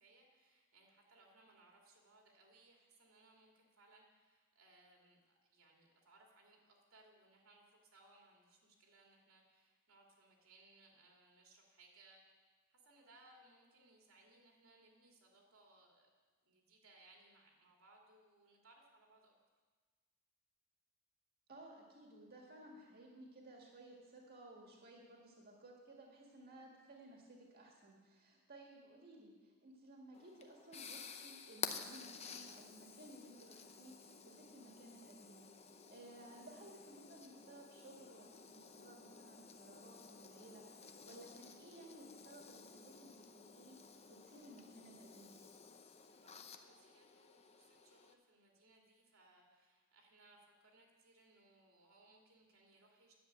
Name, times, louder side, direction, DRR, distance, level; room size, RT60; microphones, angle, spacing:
voice 1, 0.0-16.1 16.4-19.3 46.2-53.1, right 2 dB, 90° right, 0 dB, 2.7 m, -67 dB
voice 2, 21.5-45.3, right 1 dB, 50° right, -1 dB, 1.8 m, -58 dB
sound 1, 30.1-48.1, left 6 dB, 30° left, 0.7 m, -53 dB
10.5 x 7.3 x 8.7 m, 1.4 s
head